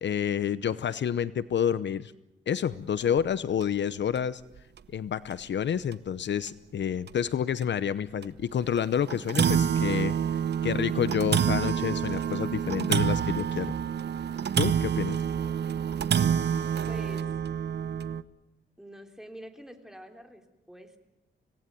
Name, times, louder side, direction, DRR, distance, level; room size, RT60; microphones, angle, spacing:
voice 1, 0.0-2.1 2.5-4.4 4.9-13.7 14.6-15.2, left 8 dB, 65° left, 15 dB, 0.8 m, -29 dB
sound 1, 3.0-3.2 3.6-3.7 4.2-4.3 5.3-5.4 5.9-6.0 6.5-6.6 7.1-7.2 8.2-8.4 8.8-8.9 9.1-18.2, right 8 dB, 60° right, 1.0 m, -27 dB
voice 2, 16.9-17.3 18.8-21.0, equal, 5° right, 4 dB, 3.3 m, -46 dB
26.0 x 18.5 x 9.2 m, 0.94 s
wide cardioid pair, 115°, 20 cm